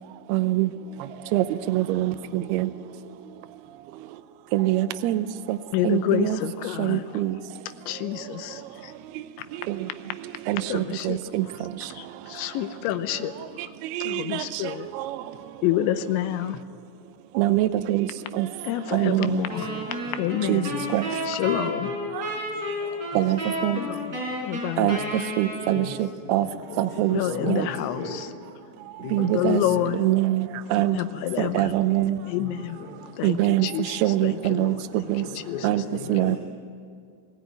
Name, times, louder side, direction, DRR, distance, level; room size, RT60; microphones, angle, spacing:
voice 1, 0.3-0.7 1.3-2.7 4.5-5.6 5.8-6.4 6.8-7.3 10.5-11.5 14.0-14.4 17.4-18.1 18.4-18.5 18.9-19.4 20.5-20.6 20.9-21.0 23.2-23.8 24.8-25.0 25.4-25.9 26.3-26.5 26.8-27.2 27.5-27.7 29.1-29.6 30.0-31.0 31.6-32.2 33.2-33.7 34.0-34.7 35.1-35.2 35.6-35.8 36.1-36.4, right 15 dB, 80° right, 2.4 m, -23 dB
voice 2, 5.7-7.0 7.9-8.6 10.7-11.2 12.0-13.3 14.0-14.9 15.6-16.6 18.6-19.7 20.2-20.7 21.3-21.9 23.8-24.0 24.4-25.0 27.1-28.0 29.2-30.0 30.9-31.7 32.3-32.8 33.2-34.0 34.2-34.8 36.2-36.4, left 12 dB, 85° left, 3.2 m, -28 dB
voice 3, 19.0-20.4 20.7-21.9 22.4-22.5 23.1-23.3 25.7-28.2 29.0-30.0 32.1-33.0 35.2-36.4, left 3 dB, 60° left, 5.3 m, -38 dB
sound 1, 19.5-26.1, equal, 20° right, 4.6 m, -32 dB
23.5 x 16.0 x 9.2 m
omnidirectional pair, 5.2 m